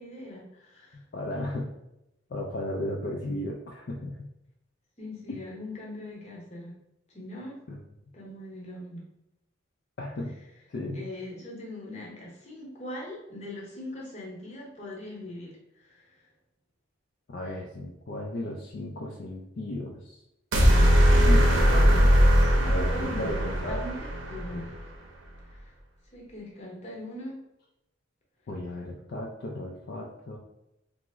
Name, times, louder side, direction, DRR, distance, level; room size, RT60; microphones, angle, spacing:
voice 1, 0.0-1.0 5.0-6.7 7.1-7.6 8.1-9.0 10.9-16.2 21.9-24.8 25.5-25.7 26.1-27.4, left 1 dB, 35° left, -3 dB, 0.9 m, -41 dB
voice 2, 1.1-1.7 2.3-4.3 5.3-5.4 7.7-7.8 10.0-10.3 10.7-11.0 17.3-20.2 21.3-22.2 22.6-23.8 24.5-24.7 28.5-30.4, left 1 dB, 55° left, -2 dB, 0.4 m, -35 dB
sound 1, 20.5-24.8, equal, 65° right, 0.6 m, -20 dB
3.0 x 2.0 x 3.4 m, 0.87 s
head